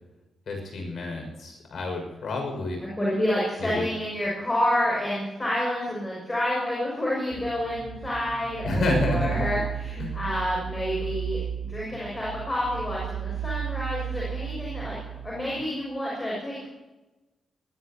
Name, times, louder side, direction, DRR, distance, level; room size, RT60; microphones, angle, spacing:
voice 1, 0.5-2.8 3.6-3.8 8.6-9.5 10.0-10.2, left 2 dB, 60° left, 2 dB, 6.2 m, -29 dB
voice 2, 2.8-16.7, left 1 dB, 15° left, -5 dB, 6.6 m, -29 dB
sound 1, 7.3-15.6, right 9 dB, 60° right, 5.8 m, -34 dB
21.0 x 19.0 x 3.0 m, 1.1 s
wide cardioid pair, 150°, 0 cm